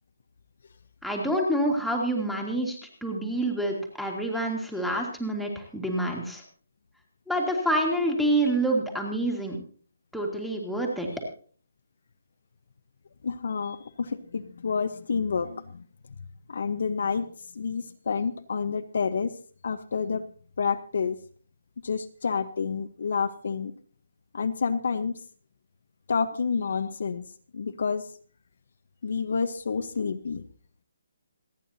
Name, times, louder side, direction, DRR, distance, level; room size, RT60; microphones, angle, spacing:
voice 1, 1.0-6.4 7.3-9.6 10.1-11.1, right 1 dB, ahead, 0 dB, 1.9 m, -27 dB
voice 2, 13.2-15.8 16.5-17.3 17.5-19.3 19.6-20.3 20.6-21.2 21.8-23.7 24.3-25.2 26.1-27.2 27.5-28.1 29.0-30.4, left 5 dB, 55° left, 9 dB, 0.9 m, -29 dB
27.0 x 9.3 x 2.8 m, 0.43 s
hypercardioid pair, 170°, 0 cm